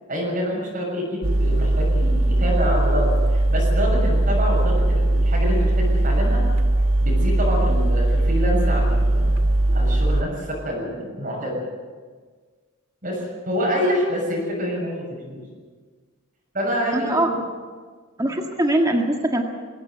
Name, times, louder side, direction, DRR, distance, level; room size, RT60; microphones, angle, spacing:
voice 1, 0.1-6.4 7.0-9.3 9.7-11.6 13.0-15.4 16.5-17.3, equal, 40° right, -3 dB, 6.9 m, -27 dB
sound 1, 1.2-10.2, right 1 dB, 75° right, 1.5 m, -19 dB
voice 2, 16.9-17.3 18.2-19.4, right 1 dB, 15° right, 2 dB, 1.7 m, -21 dB
23.0 x 16.5 x 8.0 m, 1.5 s
head